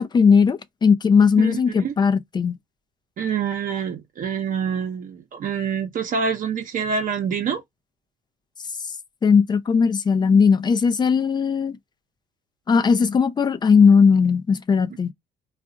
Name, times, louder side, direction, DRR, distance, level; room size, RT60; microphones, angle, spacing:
voice 1, 0.0-2.6 9.2-11.8 12.7-15.1, left 5 dB, 25° left, 0.5 m, -18 dB
voice 2, 1.4-1.9 3.2-7.6, right 6 dB, 50° right, 0.9 m, -26 dB
2.5 x 2.4 x 3.8 m
cardioid pair, 110°, 17 cm